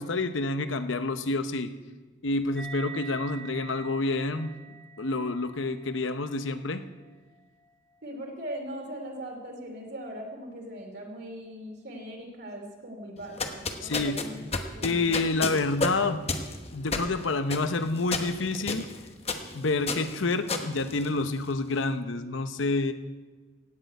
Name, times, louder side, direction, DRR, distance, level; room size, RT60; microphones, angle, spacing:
voice 1, 0.0-1.7 2.2-4.5 5.0-6.8 13.8-14.2 14.8-16.3 16.7-18.9 19.5-22.9, left 3 dB, 75° left, 10 dB, 0.8 m, -28 dB
sound 1, 2.5-9.4, right 6 dB, 5° left, 0.7 m, -47 dB
voice 2, 8.0-14.4 14.7-15.2, equal, 55° right, 1 dB, 2.9 m, -40 dB
sound 2, 13.2-21.6, left 3 dB, 30° left, 1.0 m, -33 dB
16.0 x 6.6 x 9.2 m, 1.3 s
head